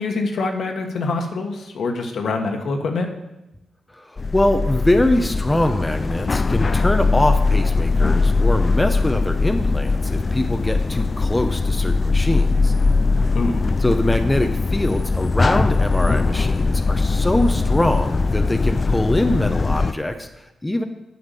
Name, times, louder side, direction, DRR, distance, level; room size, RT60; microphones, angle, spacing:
voice 1, 0.0-3.1 13.3-13.7, left 3 dB, 70° left, 3 dB, 1.4 m, -25 dB
voice 2, 3.9-12.7 13.8-20.8, left 1 dB, 10° left, 6 dB, 0.7 m, -23 dB
sound 1, 4.2-19.9, left 3 dB, 35° left, 0.3 m, -20 dB
9.6 x 5.7 x 6.8 m, 0.94 s
cardioid pair, 95°, 0 cm